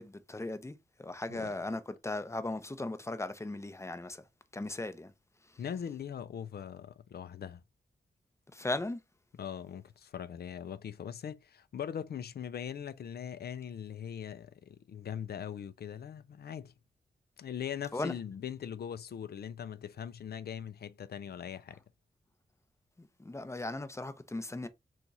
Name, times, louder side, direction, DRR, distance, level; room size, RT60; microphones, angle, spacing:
voice 1, 0.0-4.3 4.5-5.1 5.4-5.6 8.5-9.0 17.9-18.1 23.0-24.7, left 2 dB, 15° left, 0.6 m, -37 dB
voice 2, 5.6-7.6 9.4-16.7 17.4-21.8, left 8 dB, 60° left, 0.4 m, -41 dB
2.9 x 2.4 x 3.9 m
cardioid pair, 50°, 18 cm